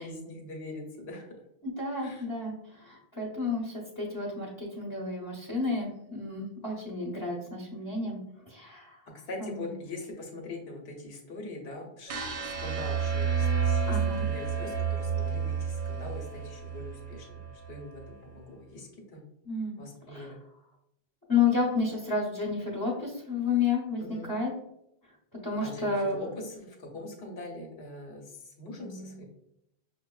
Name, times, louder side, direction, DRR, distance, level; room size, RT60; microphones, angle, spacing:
voice 1, 0.0-1.3 2.0-2.3 9.3-19.2 19.8-20.4 24.0-24.3 25.6-29.2, left 2 dB, 75° left, 1 dB, 1.0 m, -42 dB
voice 2, 1.6-8.2 8.5-9.0 9.4-9.7 13.9-14.2 19.4-19.7 20.1-20.3 21.3-24.0 24.3-24.5 25.4-26.3 28.8-29.2, left 4 dB, 20° left, -6 dB, 0.8 m, -31 dB
sound 1, 12.1-18.2, right 7 dB, 55° right, 0.7 m, -30 dB
5.9 x 2.1 x 2.3 m, 0.79 s
omnidirectional pair, 1.0 m